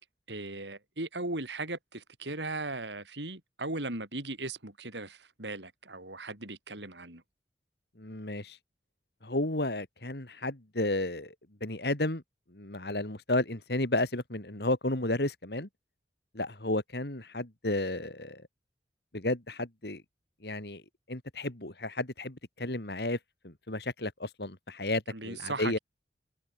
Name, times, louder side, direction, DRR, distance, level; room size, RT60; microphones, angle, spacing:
voice 1, 0.3-7.2 25.1-25.8, right 2 dB, 80° right, 5.6 m, -38 dB
voice 2, 8.0-8.6 9.2-11.3 11.6-12.2 12.5-15.7 16.3-18.4 19.1-20.0 20.4-20.8 21.1-23.2 23.4-25.8, left 2 dB, 65° left, 2.9 m, -32 dB
head